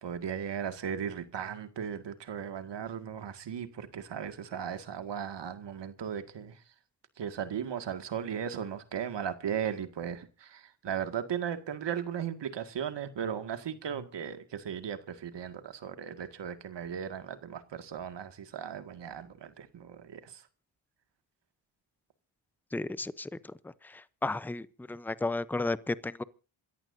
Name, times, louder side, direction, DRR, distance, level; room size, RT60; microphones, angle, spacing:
voice 1, 0.0-6.6 7.2-20.4, right 8 dB, 60° right, 2.0 m, -37 dB
voice 2, 22.7-23.3 23.8-26.2, left 2 dB, 5° left, 0.7 m, -33 dB
27.0 x 14.0 x 2.7 m
supercardioid pair, 60°, 49 cm